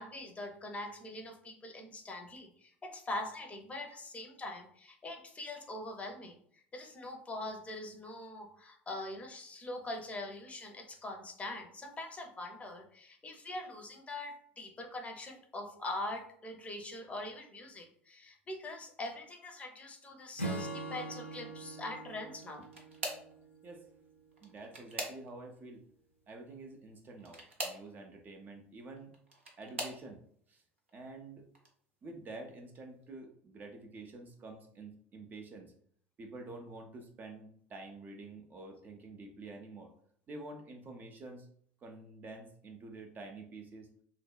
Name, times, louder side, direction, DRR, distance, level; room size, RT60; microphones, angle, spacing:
voice 1, 0.0-22.7, left 2 dB, 20° left, 2 dB, 0.6 m, -43 dB
Acoustic guitar / Strum, 20.4-23.9, right 2 dB, 90° left, 0.3 m, -42 dB
sound 1, 22.3-23.4 24.3-25.6 27.2-27.9 29.0-30.0 30.8-31.1 31.5-31.7 33.0-33.1, right 2 dB, 75° right, 0.6 m, -42 dB
voice 2, 24.4-25.8 26.3-29.1 29.6-30.2 30.5-30.6 30.9-31.5 32.0-35.7 36.2-39.9 40.3-41.5 41.8-43.9, right 2 dB, 30° right, 4 dB, 0.4 m, -48 dB
3.2 x 2.0 x 2.3 m, 0.62 s
figure-of-eight pair, 70°, 7 cm